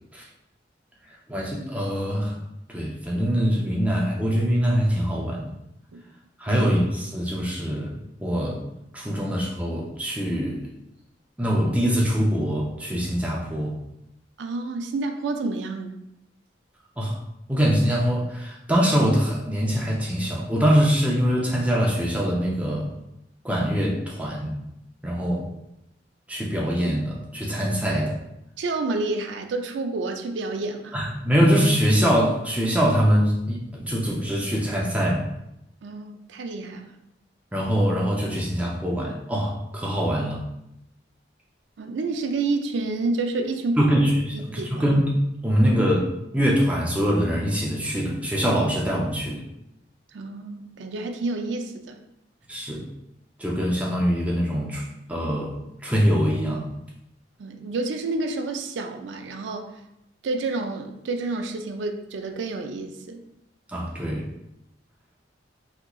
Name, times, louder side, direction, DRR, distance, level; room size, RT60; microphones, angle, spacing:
voice 1, 1.3-2.4 2.7-5.5 6.4-8.6 8.9-10.7 11.4-13.7 17.0-17.2 17.5-22.9 23.4-24.6 25.0-25.4 26.3-28.2 30.9-35.3 37.5-40.4 43.8-45.1 45.4-49.4 52.5-52.8 53.4-55.6 55.8-56.7 63.7-64.3, equal, 10° right, -3 dB, 0.4 m, -23 dB
voice 2, 14.4-16.0 28.6-30.9 35.8-36.9 41.8-44.0 44.3-44.8 50.1-52.0 57.4-59.8 60.2-63.2, right 3 dB, 75° right, 5 dB, 0.4 m, -29 dB
3.5 x 2.9 x 2.3 m, 0.83 s
head